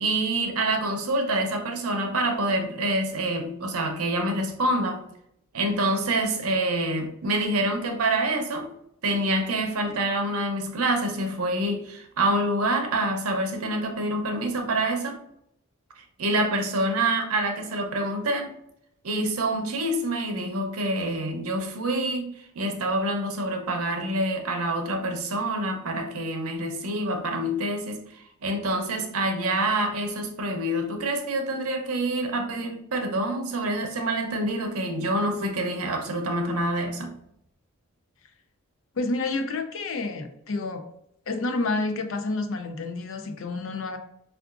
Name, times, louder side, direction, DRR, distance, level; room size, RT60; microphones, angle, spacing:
voice 1, 0.0-5.1 5.5-8.7 9.0-15.2 16.2-18.5 19.0-28.0 28.4-37.1, right 1 dB, 80° right, 0.7 m, -26 dB
voice 2, 38.9-40.8 41.3-44.0, left 3 dB, 65° left, 0.5 m, -29 dB
4.5 x 2.4 x 2.4 m
head